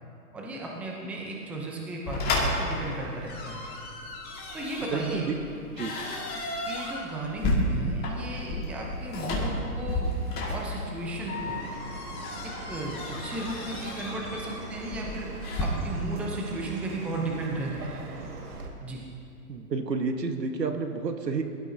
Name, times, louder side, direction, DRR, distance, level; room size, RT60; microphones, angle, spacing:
voice 1, 0.3-3.6 4.5-5.3 6.6-10.2 10.5-11.6 12.4-13.0 13.2-15.3 15.6-18.0 18.8-19.0, right 2 dB, 5° right, -2 dB, 0.6 m, -35 dB
sound 1, 2.1-15.6, left 1 dB, 20° left, 2.1 m, -32 dB
voice 2, 4.9-5.3 5.7-5.9 19.5-21.4, right 4 dB, 90° right, 6 dB, 1.5 m, -30 dB
Chirp tweet, 10.9-18.7, right 3 dB, 70° right, 2.1 m, -41 dB
22.0 x 12.5 x 2.8 m, 2.6 s
hypercardioid pair, 135°, 48 cm